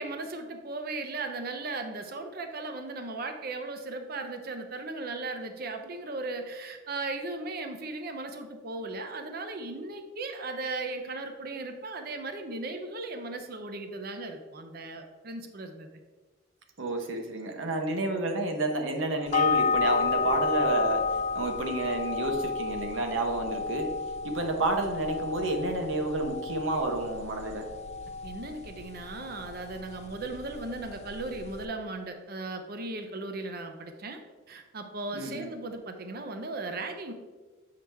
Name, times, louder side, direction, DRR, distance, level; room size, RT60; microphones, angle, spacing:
voice 1, 0.0-15.9 28.2-34.2 34.5-37.1, right 2 dB, 50° right, 6 dB, 0.6 m, -37 dB
voice 2, 16.8-23.9 24.2-27.6 35.1-35.5, right 2 dB, 75° right, 4 dB, 0.9 m, -30 dB
sound 1, 19.3-31.7, left 5 dB, 35° left, 0.3 m, -32 dB
7.4 x 4.8 x 3.4 m, 1.3 s
head